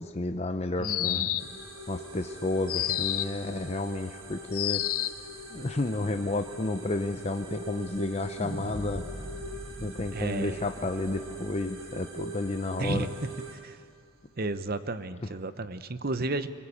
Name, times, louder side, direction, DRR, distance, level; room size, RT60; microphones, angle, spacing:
voice 1, 0.0-1.3 1.9-4.8 5.5-9.0 9.8-13.1, left 2 dB, 30° left, 6 dB, 0.7 m, -31 dB
sound 1, 0.8-1.6 2.7-3.4 4.5-5.3, left 14 dB, 90° left, 0.7 m, -29 dB
voice 2, 0.8-1.5 2.9-3.0 10.1-10.7 12.8-13.8 14.4-16.5, right 2 dB, 45° right, 13 dB, 0.8 m, -33 dB
sound 2, 1.4-13.6, right 1 dB, 70° right, 3.5 m, -43 dB
sound 3, 8.4-12.7, equal, 15° right, 5.7 m, -42 dB
23.5 x 21.0 x 8.6 m, 2.3 s
head